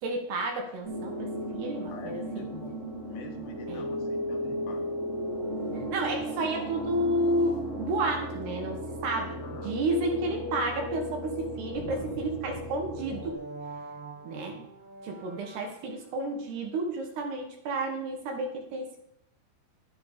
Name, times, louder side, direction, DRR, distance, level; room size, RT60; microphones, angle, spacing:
voice 1, 0.0-2.5 3.7-3.9 5.9-13.4 14.2-14.6 15.0-19.0, right 1 dB, 65° right, 2 dB, 4.3 m, -31 dB
sound 1, 0.8-13.3, equal, 20° right, 2.8 m, -35 dB
voice 2, 1.9-5.0 9.4-9.7 11.9-12.2 12.5-12.6 14.5-14.7, left 5 dB, 70° left, 3 dB, 3.9 m, -47 dB
sound 2, 11.7-16.2, right 3 dB, 45° right, 2.2 m, -45 dB
12.5 x 12.0 x 5.2 m, 0.75 s
omnidirectional pair, 5.2 m